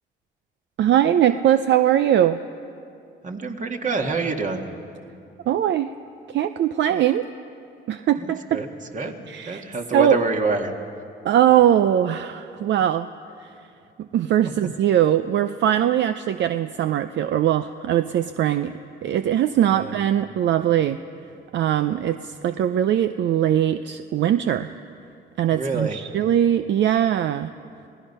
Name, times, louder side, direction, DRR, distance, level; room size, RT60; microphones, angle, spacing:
voice 1, 0.8-2.4 5.5-5.9 6.3-7.3 7.9-8.6 9.3-9.6 9.9-10.2 11.2-13.1 13.4-13.5 14.0-21.0 21.5-24.7 25.4-27.5, right 11 dB, 65° right, 10 dB, 0.6 m, -21 dB
voice 2, 3.2-4.7 8.2-8.7 8.9-9.2 9.4-10.7 19.7-19.9 25.5-26.0, right 3 dB, 40° right, 3 dB, 1.9 m, -26 dB
27.5 x 17.5 x 5.6 m, 2.5 s
cardioid pair, 90°, 20 cm